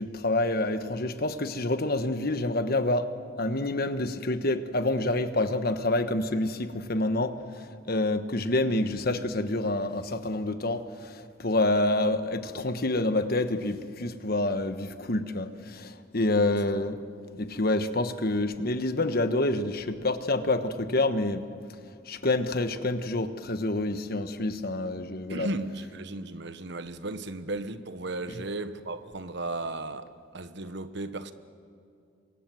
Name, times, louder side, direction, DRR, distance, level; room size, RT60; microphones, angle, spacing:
voice 1, 0.0-3.1 3.4-7.3 7.9-11.1 11.4-17.0 17.3-21.4 22.1-25.5, left 2 dB, 50° left, 1.3 m, -27 dB
voice 2, 25.3-31.3, right 2 dB, 60° right, 1.2 m, -35 dB
28.5 x 25.0 x 7.8 m
head